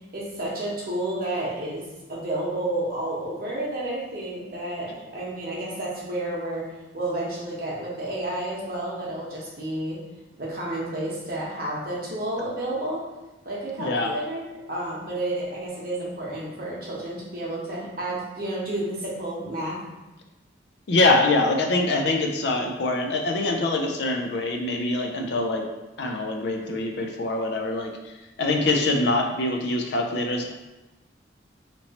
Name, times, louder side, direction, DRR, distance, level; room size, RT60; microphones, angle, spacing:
voice 1, 0.1-1.8 2.1-6.6 6.9-10.0 10.4-13.0 13.4-19.8, right 1 dB, 50° right, -5 dB, 0.8 m, -31 dB
voice 2, 13.8-14.1 20.9-25.7 26.0-27.9 28.4-30.5, left 2 dB, 60° left, 2 dB, 0.4 m, -24 dB
2.9 x 2.9 x 2.8 m, 1.1 s
head